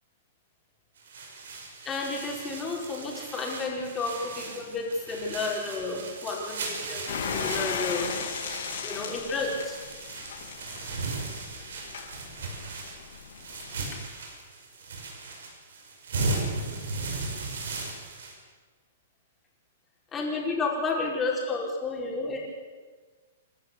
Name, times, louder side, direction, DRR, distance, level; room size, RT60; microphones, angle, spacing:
sound 1, 1.0-18.3, right 3 dB, 80° right, 5.9 m, -37 dB
voice 1, 1.8-8.1 8.8-9.8 20.1-22.4, left 3 dB, 15° left, -1 dB, 4.8 m, -31 dB
sound 2, 7.1-14.0, left 6 dB, 70° left, 6.4 m, -36 dB
28.5 x 12.0 x 8.4 m, 1.4 s
hypercardioid pair, 160°, 0 cm